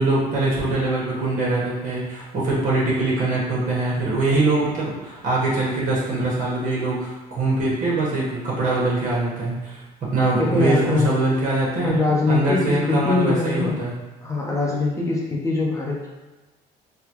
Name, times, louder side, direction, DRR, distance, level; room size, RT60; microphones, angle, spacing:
voice 1, 0.0-9.8 10.1-11.9 12.3-13.9, right 2 dB, 50° right, -6 dB, 1.2 m, -23 dB
voice 2, 10.4-11.2 11.8-13.8 14.2-16.1, left 3 dB, 20° left, -3 dB, 0.9 m, -22 dB
3.9 x 2.3 x 3.0 m, 1.1 s
cardioid pair, 110°, 17 cm